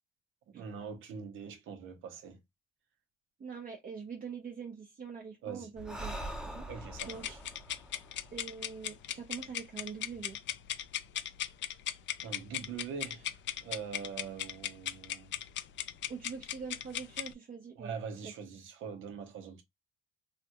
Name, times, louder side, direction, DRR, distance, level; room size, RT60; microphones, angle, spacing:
voice 1, 0.5-2.4 5.4-5.7 6.7-7.4 12.2-15.3 17.8-19.6, right 6 dB, 80° right, 0.8 m, -43 dB
voice 2, 3.4-6.2 6.5-6.6 7.1-7.3 8.3-10.4 16.1-17.9 18.2-18.3, right 6 dB, 45° right, 0.8 m, -44 dB
Breathing, 5.8-9.3, right 1 dB, 5° right, 0.7 m, -44 dB
sound 1, 7.0-17.3, left 11 dB, 70° left, 0.4 m, -38 dB
3.3 x 2.2 x 2.9 m
cardioid pair, 90°, 20 cm